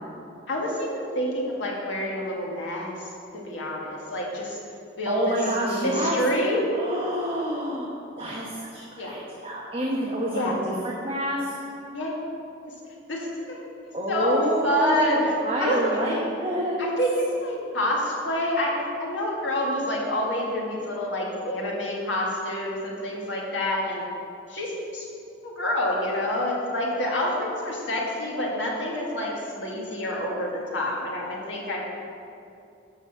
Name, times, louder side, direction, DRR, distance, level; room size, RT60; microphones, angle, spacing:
voice 1, 0.5-4.6 5.0-5.4 5.7-6.7 9.0-9.2 10.3-10.6 11.9-12.2 13.1-13.6 14.1-16.0 16.8-24.0 24.5-25.1 25.4-31.9, left 1 dB, 70° left, -3 dB, 2.0 m, -27 dB
voice 2, 5.1-6.2 6.7-11.5 13.9-17.0, equal, 30° right, -5 dB, 1.1 m, -28 dB
11.5 x 4.1 x 7.2 m, 2.6 s
head